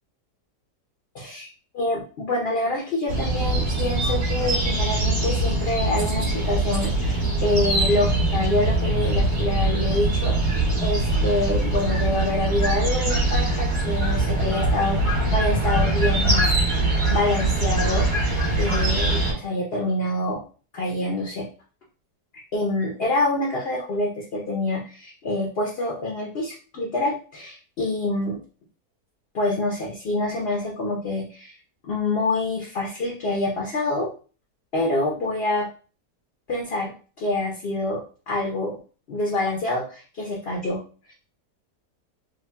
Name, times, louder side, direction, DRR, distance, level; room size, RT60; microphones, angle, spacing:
voice 1, 1.1-1.5 1.7-16.5 16.8-18.1 18.6-20.4 20.7-21.5 22.5-28.4 29.3-31.5 31.8-34.1 34.7-35.7 36.5-38.8 39.1-41.1, left 2 dB, 50° left, -2 dB, 0.8 m, -26 dB
sound 1, 3.1-19.3, right 2 dB, 55° right, 2.1 m, -22 dB
5.0 x 2.4 x 2.2 m, 0.37 s
omnidirectional pair, 1.8 m